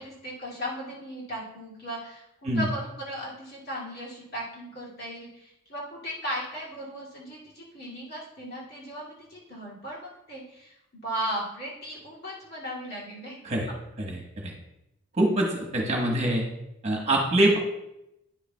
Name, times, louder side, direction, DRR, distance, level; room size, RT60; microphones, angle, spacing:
voice 1, 0.0-10.8 11.0-13.4, equal, 45° left, -6 dB, 2.3 m, -37 dB
voice 2, 14.0-14.5 15.1-16.5 16.8-17.6, right 1 dB, 30° right, -1 dB, 1.1 m, -24 dB
9.8 x 6.6 x 2.2 m, 0.86 s
head